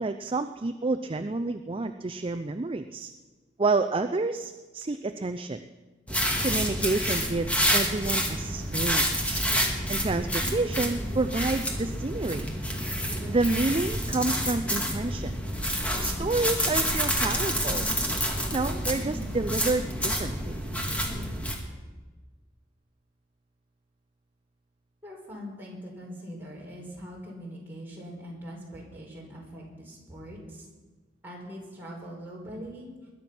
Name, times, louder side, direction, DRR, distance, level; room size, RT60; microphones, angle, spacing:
voice 1, 0.0-3.1 3.6-5.7 6.4-9.4 9.9-12.5 13.3-15.4 16.0-17.9 18.5-20.6, right 3 dB, 30° right, 8 dB, 0.5 m, -29 dB
sound 1, 6.1-21.6, equal, 10° left, 2.2 m, -28 dB
voice 2, 25.0-30.6 31.2-32.9, equal, 10° right, -4 dB, 5.1 m, -42 dB
21.0 x 10.5 x 6.1 m, 1.3 s
head